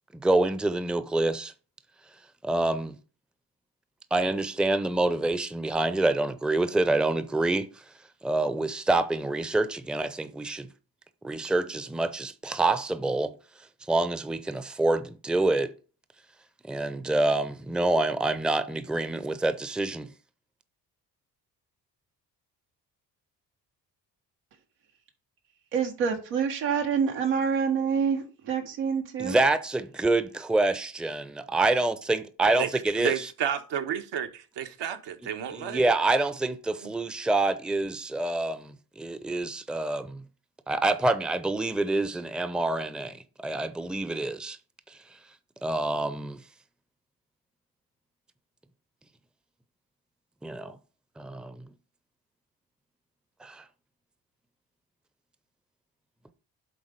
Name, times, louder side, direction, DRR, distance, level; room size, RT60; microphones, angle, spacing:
voice 1, 0.1-1.5 2.4-3.0 4.1-7.7 8.2-10.7 11.2-13.3 13.9-15.7 16.6-20.1 29.2-33.3 35.5-40.2 40.7-44.6 45.6-46.4 50.4-50.8 51.2-51.6 53.4-53.6, right 2 dB, ahead, 0.7 m, -27 dB
voice 2, 25.7-29.4, right 6 dB, 80° right, 1.6 m, -27 dB
voice 3, 33.0-35.8 36.8-36.9, right 9 dB, 60° right, 1.2 m, -31 dB
7.7 x 3.9 x 5.2 m
hypercardioid pair, 50°, 48 cm